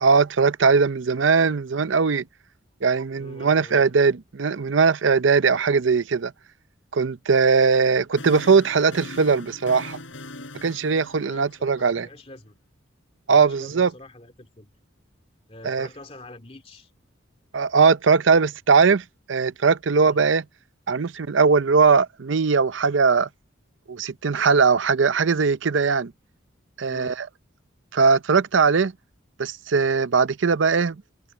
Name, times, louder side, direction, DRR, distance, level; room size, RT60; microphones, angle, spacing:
voice 1, 0.0-2.2 2.8-6.3 6.9-10.0 10.6-12.1 13.3-13.9 15.6-15.9 17.5-20.4 20.9-23.3 23.9-26.1 26.8-27.3 27.9-28.9 29.4-31.0, right 5 dB, 70° right, 0.6 m, -20 dB
voice 2, 3.2-4.0 11.1-12.6 13.3-14.7 15.5-16.9 20.0-20.3 26.9-27.2, left 2 dB, 30° left, 2.4 m, -45 dB
sound 1, 7.7-12.0, left 2 dB, 70° left, 5.1 m, -41 dB
head